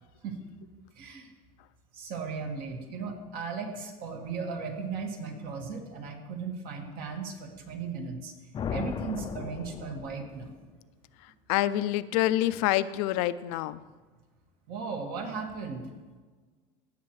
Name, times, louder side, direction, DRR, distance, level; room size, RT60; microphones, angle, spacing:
voice 1, 1.0-1.3 1.9-8.3 8.7-10.6 14.7-15.8, right 5 dB, 65° right, 2 dB, 2.0 m, -36 dB
sound 1, 8.5-10.5, left 7 dB, 30° left, 0.4 m, -36 dB
voice 2, 11.2-13.8, left 14 dB, 80° left, 15 dB, 0.5 m, -27 dB
16.0 x 7.5 x 3.2 m, 1.4 s
supercardioid pair, 120°, 17 cm